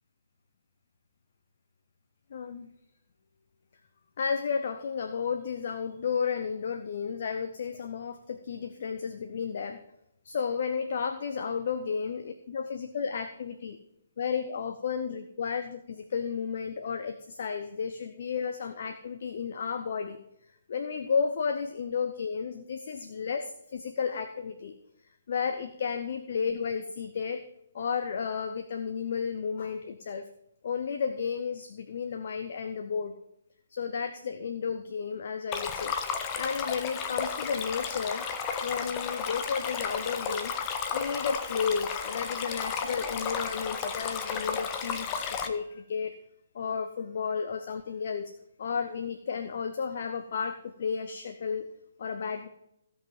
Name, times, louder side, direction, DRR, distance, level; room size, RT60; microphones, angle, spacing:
voice 1, 2.3-2.7 4.2-9.8 10.2-13.8 14.2-20.2 20.7-24.7 25.3-27.4 27.7-30.3 30.6-33.1 33.7-36.0 36.4-38.3 38.6-46.2 46.5-48.3 48.6-51.7 52.0-52.5, left 6 dB, 50° left, 8 dB, 0.8 m, -32 dB
Stream, 35.5-45.5, left 6 dB, 25° left, 1.0 m, -33 dB
16.0 x 5.7 x 5.5 m, 0.82 s
figure-of-eight pair, 130°, 0 cm